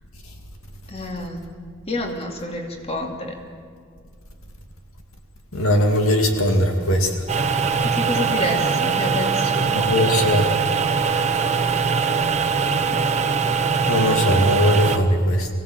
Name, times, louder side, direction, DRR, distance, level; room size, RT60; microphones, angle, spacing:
voice 1, 0.9-1.4 1.9-3.4 7.9-9.9, left 1 dB, 30° left, 2 dB, 2.6 m, -28 dB
voice 2, 5.5-7.2 9.7-10.5 13.9-15.5, equal, 75° left, 4 dB, 2.4 m, -19 dB
sound 1, 7.3-15.0, right 5 dB, 35° right, 1.0 m, -21 dB
24.0 x 16.5 x 7.9 m, 2.2 s
head